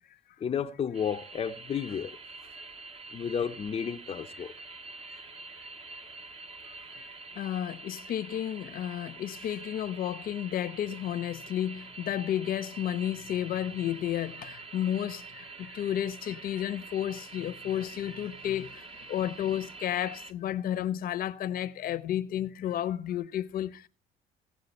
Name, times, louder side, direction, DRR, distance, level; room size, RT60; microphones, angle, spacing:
voice 1, 0.4-2.2 3.1-4.5, left 7 dB, 35° left, 0.7 m, -32 dB
sound 1, 0.9-20.3, right 3 dB, 35° right, 1.4 m, -46 dB
voice 2, 4.4-4.8 5.1-5.2 6.6-7.1 7.3-23.9, left 11 dB, 60° left, 0.9 m, -32 dB
17.5 x 7.5 x 4.2 m
cardioid pair, 110°, 17 cm